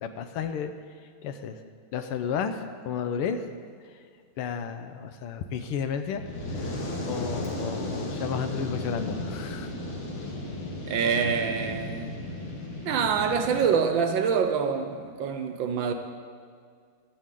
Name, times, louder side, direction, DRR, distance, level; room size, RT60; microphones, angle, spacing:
voice 1, 0.0-0.7 1.2-1.6 1.9-3.4 3.8-3.9 4.4-6.2 6.6-9.7, left 7 dB, 85° left, 8 dB, 1.7 m, -32 dB
Fire, 6.0-13.7, left 1 dB, 70° left, 2.6 m, -35 dB
voice 2, 10.9-12.2 12.8-15.9, right 6 dB, 70° right, 7 dB, 1.4 m, -26 dB
16.0 x 12.0 x 3.7 m, 2.1 s
omnidirectional pair, 2.4 m